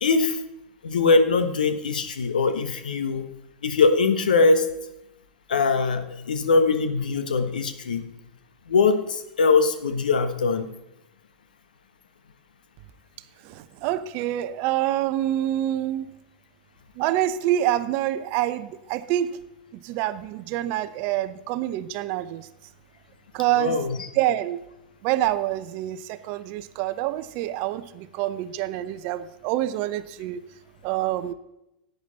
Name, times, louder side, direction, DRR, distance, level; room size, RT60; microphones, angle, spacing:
voice 1, 0.0-0.4 0.8-3.2 3.6-4.7 5.5-8.0 8.7-10.7 23.6-24.1, left 4 dB, 70° left, 9 dB, 1.3 m, -22 dB
voice 2, 13.4-16.2 17.0-19.4 19.7-22.5 23.3-23.8 24.1-24.6 25.0-30.4 30.8-31.3, right 13 dB, 45° right, 14 dB, 0.7 m, -26 dB
11.0 x 9.5 x 4.1 m, 0.89 s
figure-of-eight pair, 95°, 5 cm